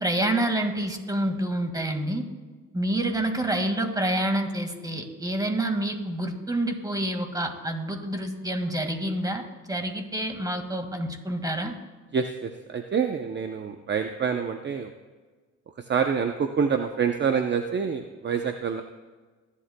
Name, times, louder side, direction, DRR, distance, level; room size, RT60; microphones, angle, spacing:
voice 1, 0.0-2.2 2.7-11.7, right 1 dB, 10° right, 5 dB, 1.9 m, -28 dB
voice 2, 12.1-14.9 15.8-18.8, right 6 dB, 35° right, 6 dB, 0.7 m, -27 dB
24.0 x 11.5 x 2.3 m, 1.4 s
cardioid pair, 90°, 30 cm